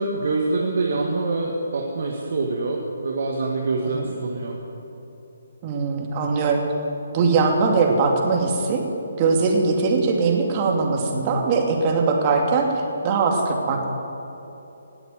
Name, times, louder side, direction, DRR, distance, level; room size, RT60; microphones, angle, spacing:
voice 1, 0.0-4.6, right 3 dB, 55° right, 0 dB, 1.7 m, -25 dB
voice 2, 5.6-6.6 7.1-8.8 9.2-13.9, right 4 dB, 30° right, 1 dB, 2.5 m, -21 dB
18.0 x 7.9 x 9.3 m, 3.0 s
figure-of-eight pair, 140°, 0 cm